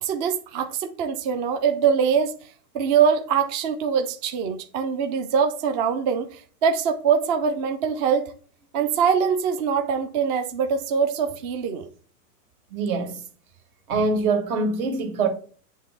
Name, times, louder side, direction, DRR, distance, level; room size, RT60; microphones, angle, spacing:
voice 1, 0.0-2.5 2.7-8.3 8.7-11.8, right 7 dB, 30° right, 0.4 m, -23 dB
voice 2, 12.7-13.2 13.9-15.3, right 4 dB, 65° right, 2.2 m, -24 dB
7.4 x 3.2 x 5.7 m
hypercardioid pair, 130°, 47 cm